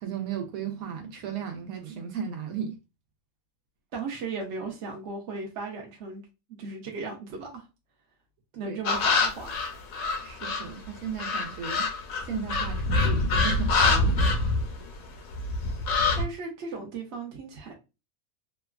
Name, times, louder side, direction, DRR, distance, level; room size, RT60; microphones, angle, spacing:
voice 1, 0.0-2.8 8.5-9.0 10.2-11.9 12.2-14.2, right 7 dB, 85° right, 1.1 m, -35 dB
voice 2, 3.9-6.2 6.6-7.7 8.6-9.7 16.1-17.7, right 3 dB, 60° right, 0.8 m, -36 dB
sound 1, 8.8-10.7 11.2-15.1 15.3-16.2, left 3 dB, 85° left, 1.1 m, -25 dB
2.9 x 2.2 x 2.3 m
omnidirectional pair, 1.5 m